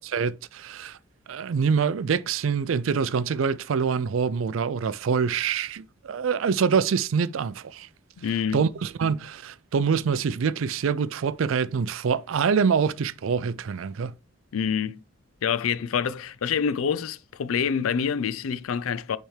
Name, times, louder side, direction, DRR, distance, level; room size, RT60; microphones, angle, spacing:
voice 1, 0.1-1.0 1.3-7.9 8.5-14.1, right 6 dB, 75° right, 0.4 m, -25 dB
voice 2, 8.2-8.6 14.5-15.0 15.4-19.2, left 7 dB, 90° left, 0.4 m, -26 dB
8.9 x 3.4 x 3.2 m
head